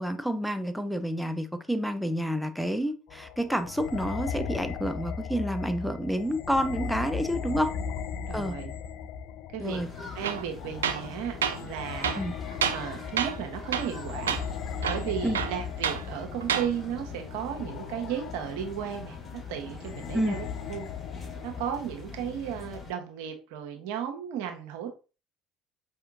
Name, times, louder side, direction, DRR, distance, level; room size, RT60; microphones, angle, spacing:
voice 1, 0.0-7.7 8.3-8.6 9.6-9.9 12.2-12.3 15.2-15.4 20.1-20.4, equal, ahead, 0.5 m, -29 dB
sound 1, 3.1-21.6, left 7 dB, 65° left, 0.3 m, -38 dB
voice 2, 8.1-8.7 9.5-9.8 10.1-12.2 12.7-14.4 14.9-19.2 19.5-20.9 21.4-24.9, right 9 dB, 70° right, 0.9 m, -35 dB
sound 2, 9.6-22.9, left 5 dB, 25° left, 2.1 m, -42 dB
Tools, 10.2-10.4 10.8-11.1 11.4-11.6 12.0-12.9 13.2-13.4 13.7-14.0 14.3-14.4 14.8-16.0 16.4-16.7, right 8 dB, 90° right, 0.3 m, -29 dB
5.4 x 2.8 x 2.5 m
hypercardioid pair, 65°, 0 cm